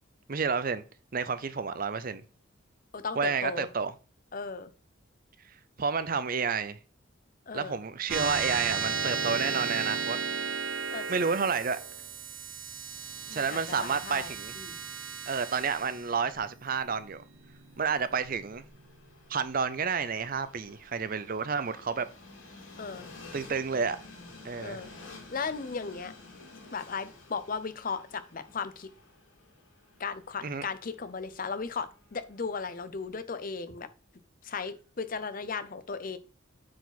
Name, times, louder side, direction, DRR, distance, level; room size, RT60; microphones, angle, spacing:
voice 1, 0.3-0.8 1.1-2.2 3.2-3.9 5.8-6.8 7.5-10.2 11.1-11.8 13.3-14.5 15.3-17.2 17.8-18.6 19.3-22.1 23.3-24.0 24.4-24.8 30.4-30.6, right 5 dB, 45° right, 0.6 m, -30 dB
voice 2, 2.9-3.7 4.3-4.7 7.5-7.8 10.9-11.2 13.3-14.8 22.8-23.1 24.6-24.9 25.3-26.1 26.7-28.9 30.0-33.9 34.4-36.2, left 5 dB, 45° left, 0.6 m, -36 dB
sound 1, 8.1-18.9, right 5 dB, 80° right, 1.0 m, -35 dB
Train, 17.3-33.3, left 3 dB, 70° left, 2.8 m, -52 dB
8.1 x 4.8 x 4.1 m
head